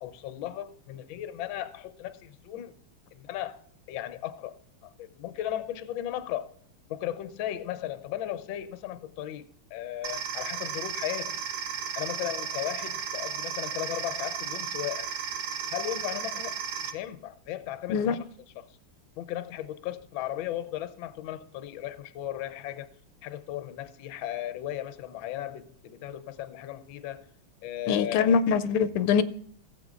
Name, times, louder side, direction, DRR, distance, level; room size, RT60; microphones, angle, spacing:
voice 1, 0.0-2.7 3.1-3.6 3.9-4.5 4.8-6.5 6.9-11.4 12.0-15.1 15.7-18.2 18.6-18.8 19.2-22.9 23.2-27.3 27.6-28.4, left 12 dB, 70° left, 1.4 m, -36 dB
sound 1, 10.0-16.9, right 7 dB, 80° right, 2.1 m, -34 dB
voice 2, 27.9-29.2, left 6 dB, 90° left, 1.6 m, -23 dB
17.0 x 7.8 x 2.4 m
omnidirectional pair, 2.4 m